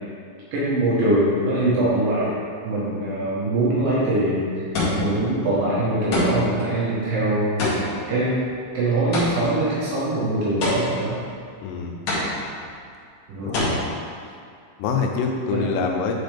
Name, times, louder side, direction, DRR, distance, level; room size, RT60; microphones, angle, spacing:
voice 1, 0.5-2.3 2.6-4.6 5.0-7.6 8.1-8.4 8.7-11.2 13.3-13.6 15.5-15.6, right 1 dB, 85° right, -9 dB, 1.9 m, -22 dB
sound 1, 3.9-4.1 4.7-5.3 6.1-6.6 7.6-9.6 10.6-11.2 12.1-12.7 13.5-13.7, left 2 dB, 65° left, 1.8 m, -25 dB
voice 2, 11.6-12.0 13.4-13.9 14.8-16.2, left 5 dB, 85° left, 2 dB, 3.3 m, -25 dB
9.5 x 4.1 x 3.4 m, 2.3 s
omnidirectional pair, 5.9 m